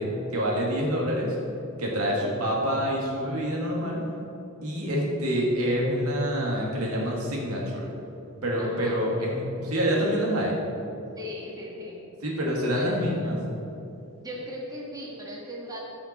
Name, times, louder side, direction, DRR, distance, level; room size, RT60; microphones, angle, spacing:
voice 1, 0.0-1.4 1.8-4.0 4.6-7.9 8.4-10.6 12.2-13.4, equal, 85° right, -2 dB, 2.1 m, -26 dB
voice 2, 8.6-9.3 11.2-12.0 12.7-13.1 14.2-15.8, equal, 20° right, -4 dB, 1.7 m, -38 dB
14.0 x 5.9 x 4.3 m, 2.9 s
head